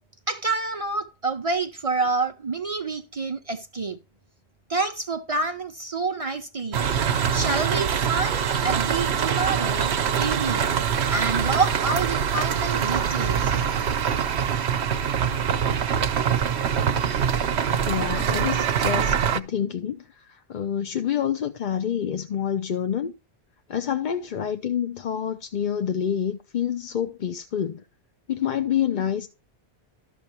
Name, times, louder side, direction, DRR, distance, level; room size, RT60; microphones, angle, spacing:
voice 1, 0.3-4.0 4.7-6.8 7.3-10.7 11.1-13.5, right 3 dB, 40° right, 0.6 m, -28 dB
sound 1, 6.7-19.4, right 8 dB, 70° right, 1.0 m, -24 dB
voice 2, 17.8-23.1 23.7-27.8 28.3-29.3, left 9 dB, 50° left, 0.7 m, -27 dB
13.0 x 6.4 x 3.0 m
omnidirectional pair, 1.1 m